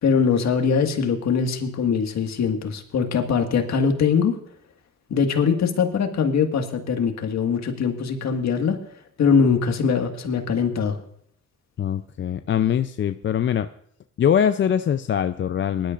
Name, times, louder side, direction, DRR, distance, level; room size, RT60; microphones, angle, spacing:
voice 1, 0.0-4.3 5.1-8.8 9.2-11.0, left 6 dB, 60° left, 5 dB, 1.8 m, -22 dB
voice 2, 11.8-13.7 14.2-15.9, left 9 dB, 40° left, 10 dB, 0.5 m, -22 dB
19.5 x 12.0 x 2.5 m, 0.68 s
cardioid pair, 90°, 30 cm